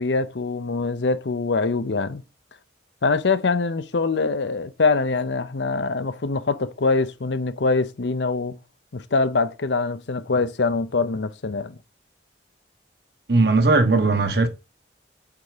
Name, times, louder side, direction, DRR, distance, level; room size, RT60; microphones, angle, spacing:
voice 1, 0.0-2.2 3.0-8.6 8.9-11.8, left 3 dB, 85° left, 0.7 m, -24 dB
voice 2, 13.3-14.5, right 3 dB, 65° right, 1.2 m, -18 dB
8.3 x 3.6 x 5.0 m
head